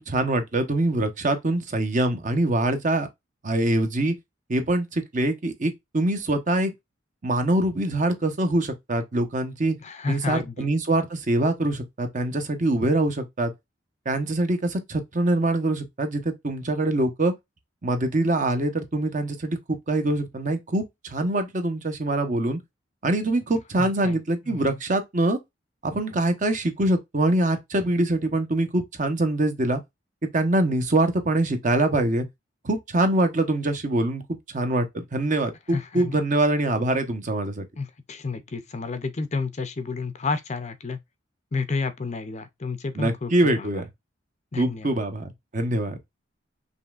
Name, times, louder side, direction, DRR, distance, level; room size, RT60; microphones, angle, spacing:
voice 1, 0.0-3.1 3.4-4.1 4.5-6.7 7.2-9.8 10.1-13.5 14.0-17.3 17.8-22.6 23.0-25.4 25.8-29.8 30.3-32.3 32.6-34.2 34.5-37.6 42.9-43.8 44.6-46.0, right 1 dB, 40° right, 0.9 m, -24 dB
voice 2, 9.8-10.7 23.8-24.2 24.5-24.7 35.7-36.1 37.8-41.0 41.5-43.3 43.6-43.7 44.5-44.9, left 4 dB, 35° left, 0.5 m, -30 dB
5.4 x 3.1 x 2.4 m
head